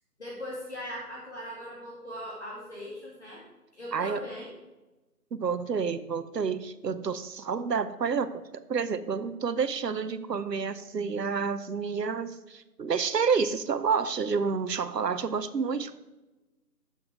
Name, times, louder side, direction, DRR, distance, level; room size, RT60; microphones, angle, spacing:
voice 1, 0.2-3.4 3.7-4.5, equal, 40° left, -5 dB, 2.2 m, -39 dB
voice 2, 3.9-4.2 5.3-8.4 8.7-16.0, right 5 dB, 80° right, 13 dB, 0.8 m, -29 dB
8.6 x 7.0 x 4.8 m, 1.1 s
figure-of-eight pair, 175°, 49 cm